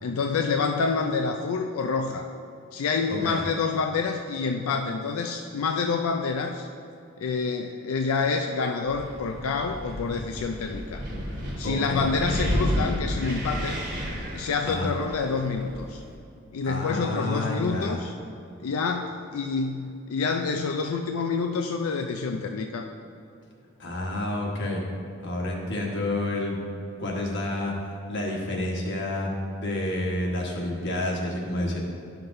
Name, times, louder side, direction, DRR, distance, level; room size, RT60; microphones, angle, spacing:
voice 1, 0.0-2.3 2.7-6.7 7.2-11.1 11.6-13.8 14.3-16.0 16.5-18.2 18.6-22.9, left 4 dB, 85° left, 4 dB, 0.4 m, -27 dB
Wind, 8.8-16.2, equal, 45° right, 1.5 m, -32 dB
voice 2, 11.6-12.1 14.6-14.9 16.6-18.0 23.8-24.8 25.2-26.6 27.0-27.7 28.1-29.3 29.6-31.8, left 1 dB, 55° left, -1 dB, 1.3 m, -29 dB
11.5 x 5.8 x 2.6 m, 2.6 s
head